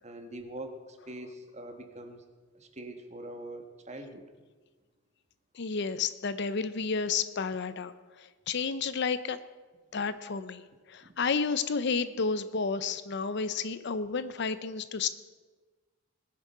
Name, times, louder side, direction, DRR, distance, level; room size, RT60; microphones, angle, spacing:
voice 1, 0.0-2.2 2.5-4.2 11.0-11.1, right 1 dB, 35° right, 6 dB, 1.4 m, -43 dB
voice 2, 5.6-7.9 8.2-9.4 9.9-10.6 10.9-15.1, left 5 dB, 55° left, 13 dB, 0.6 m, -31 dB
20.0 x 7.6 x 5.6 m, 1.3 s
head